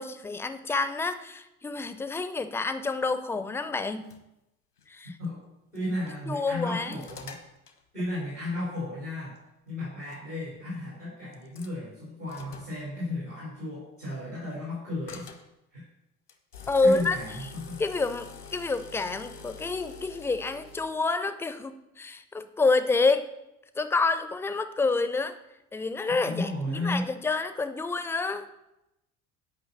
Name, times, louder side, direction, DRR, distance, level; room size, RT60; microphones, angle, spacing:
voice 1, 0.0-4.1 4.9-5.2 6.3-7.0 16.7-17.2 17.8-23.3 23.8-25.4 25.7-28.5, left 3 dB, 5° left, 12 dB, 0.4 m, -28 dB
sound 1, 3.8-4.2 4.8-4.9 5.8-6.1 6.5-7.8 9.4-9.5 10.0-10.2 11.3-11.7 12.3-12.8 15.1-15.5 16.3-20.9, left 5 dB, 80° left, 1.2 m, -46 dB
voice 2, 5.7-7.4 7.9-9.4 9.7-15.3 15.7-15.8 16.8-17.8 26.1-27.1, left 1 dB, 90° right, -7 dB, 3.9 m, -34 dB
9.4 x 5.6 x 7.2 m, 0.90 s
figure-of-eight pair, 70°, 45 cm